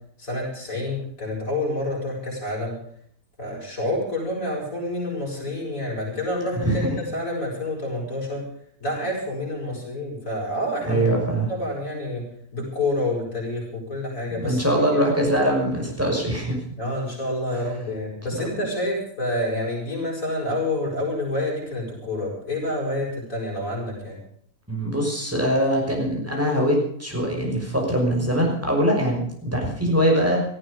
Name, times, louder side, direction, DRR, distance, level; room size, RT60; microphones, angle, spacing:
voice 1, 0.2-2.7 3.4-8.4 8.8-11.0 11.5-12.2 12.5-14.6 14.9-15.0 16.8-24.2, left 1 dB, 60° left, -2 dB, 8.0 m, -28 dB
voice 2, 10.8-11.5 14.4-16.6 17.5-17.8 18.3-18.5 24.7-30.4, right 1 dB, 10° right, 0 dB, 5.9 m, -22 dB
18.5 x 14.5 x 5.3 m, 0.65 s
omnidirectional pair, 1.6 m